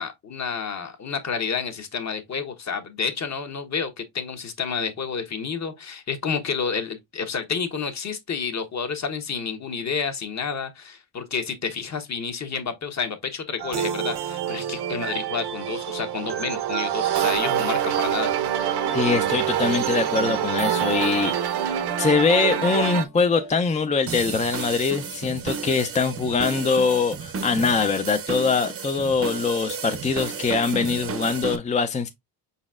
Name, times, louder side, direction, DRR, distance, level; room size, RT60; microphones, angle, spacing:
voice 1, 0.0-18.3, left 6 dB, 40° left, 1.1 m, -30 dB
sound 1, 13.6-23.0, right 10 dB, 70° right, 0.8 m, -26 dB
sound 2, 17.4-23.5, left 1 dB, 85° left, 1.8 m, -41 dB
voice 2, 18.9-32.1, left 5 dB, 20° left, 0.4 m, -23 dB
sound 3, 24.1-31.6, right 6 dB, 35° right, 0.7 m, -33 dB
5.1 x 4.1 x 2.4 m
cardioid pair, 85°, 40 cm